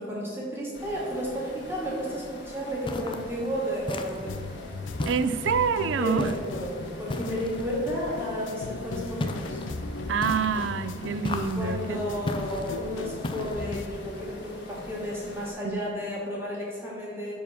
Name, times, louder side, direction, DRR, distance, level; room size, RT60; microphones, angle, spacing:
voice 1, 0.0-4.4 6.0-6.7 7.0-9.6 11.5-17.3, equal, 15° right, -6 dB, 2.2 m, -32 dB
sound 1, 0.7-15.5, left 1 dB, 70° left, 2.1 m, -45 dB
sound 2, 2.9-3.3 3.9-4.4 5.0-5.6 6.2-6.6 7.1-7.7 9.2-9.7 10.2-10.7 11.2-11.7 12.3-12.7 13.2-13.7, left 1 dB, 25° left, 0.4 m, -34 dB
sound 3, 4.3-13.9, left 3 dB, 90° left, 0.5 m, -37 dB
voice 2, 5.1-6.3 10.1-12.0 15.6-15.8, right 6 dB, 75° right, 13 dB, 0.4 m, -27 dB
7.2 x 4.7 x 5.8 m, 2.1 s
head